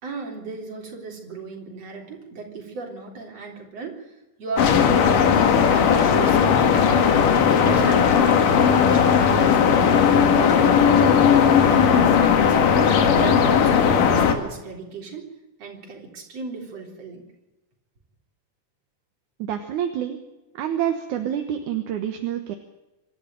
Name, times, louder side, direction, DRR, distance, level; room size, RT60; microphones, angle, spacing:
voice 1, 0.0-4.1 4.4-7.3 7.6-8.3 8.7-12.8 13.1-15.3 15.6-17.2, right 4 dB, 50° right, 0 dB, 4.8 m, -36 dB
sound 1, 4.6-14.3, left 7 dB, 90° left, 3.4 m, -17 dB
voice 2, 19.4-20.2 20.5-22.6, right 10 dB, 75° right, 6 dB, 2.6 m, -27 dB
25.5 x 12.0 x 9.1 m, 1.0 s
omnidirectional pair, 3.7 m